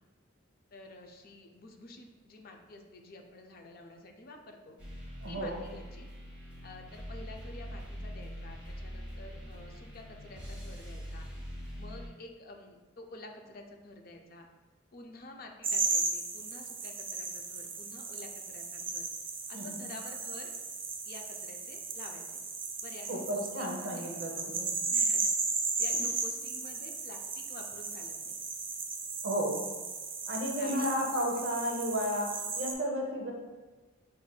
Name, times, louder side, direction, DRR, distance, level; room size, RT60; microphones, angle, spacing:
voice 1, 0.7-4.8 5.3-6.1 6.6-11.3 11.8-14.5 14.9-19.1 19.5-20.5 21.0-22.4 22.8-24.1 24.9-25.3 25.8-28.4 30.6-30.9 31.1-31.5, left 2 dB, 50° left, 3 dB, 0.4 m, -50 dB
sound 1, 4.8-12.1, equal, 5° right, 0.9 m, -43 dB
voice 2, 5.2-5.6 19.5-19.9 23.1-24.7 25.9-26.0 29.2-29.7 30.3-33.3, equal, 65° right, 0 dB, 0.7 m, -33 dB
sound 2, 15.6-32.7, right 4 dB, 25° right, 0.3 m, -35 dB
5.8 x 2.5 x 2.3 m, 1.2 s
head